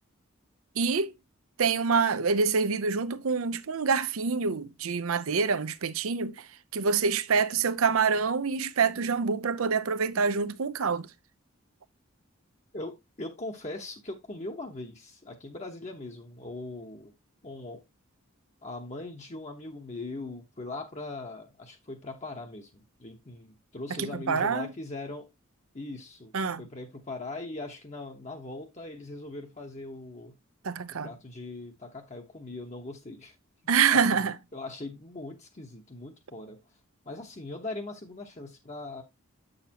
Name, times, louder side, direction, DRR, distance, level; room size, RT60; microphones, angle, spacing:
voice 1, 0.8-1.1 1.6-6.5 6.7-11.1 24.0-24.7 26.3-26.6 30.6-31.1 33.7-34.3, right 5 dB, 75° right, 0.6 m, -26 dB
voice 2, 12.7-17.1 17.4-17.8 18.6-25.3 25.7-26.3 26.6-30.3 31.0-33.4 33.9-36.6 37.0-39.0, left 2 dB, 30° left, 0.9 m, -40 dB
8.1 x 6.5 x 2.9 m
head